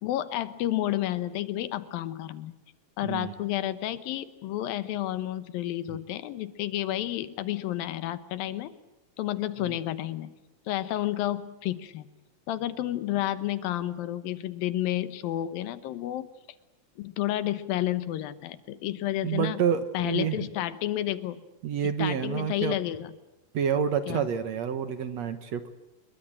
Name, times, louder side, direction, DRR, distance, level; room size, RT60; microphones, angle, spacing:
voice 1, 0.0-2.6 3.0-8.8 9.2-10.3 10.7-12.1 12.5-16.3 17.0-19.6 19.9-21.4 22.0-23.1 24.1-24.3, left 13 dB, 90° left, 13 dB, 2.9 m, -31 dB
voice 2, 3.0-3.3 9.6-9.8 19.2-20.4 21.6-22.8 23.5-25.7, right 8 dB, 60° right, 10 dB, 2.2 m, -28 dB
26.0 x 22.5 x 8.9 m, 1.0 s
omnidirectional pair, 4.0 m